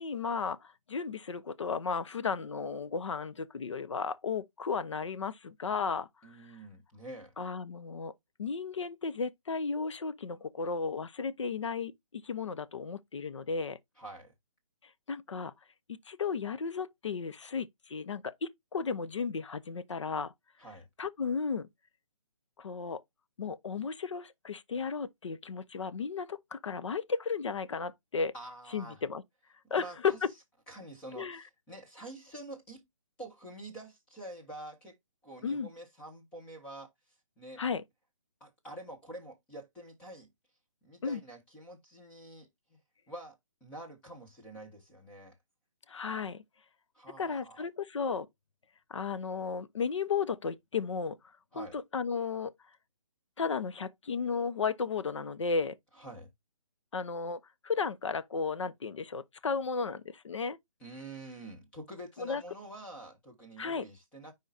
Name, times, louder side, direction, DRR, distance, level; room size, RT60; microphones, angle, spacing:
voice 1, 0.0-6.1 7.4-8.1 8.4-13.8 15.1-15.5 16.1-20.3 21.0-21.7 22.6-23.0 23.4-28.3 28.7-29.2 29.7-30.3 31.2-31.4 35.4-35.7 37.6-37.8 41.0-41.2 45.9-46.4 47.2-48.3 48.9-51.2 51.5-52.5 53.4-55.8 56.9-60.6 62.2-62.4 63.6-63.9, left 5 dB, 65° left, 0.9 m, -34 dB
voice 2, 6.2-7.3 14.0-14.3 20.6-20.9 28.3-29.0 29.7-30.2 30.7-32.8 33.2-35.0 35.2-36.9 37.4-37.6 38.4-40.3 40.8-42.8 43.1-45.4 46.9-47.6 51.5-51.8 56.0-56.3 60.8-64.3, right 1 dB, 5° left, 1.4 m, -47 dB
10.0 x 3.9 x 2.7 m
hypercardioid pair, 170°, 17 cm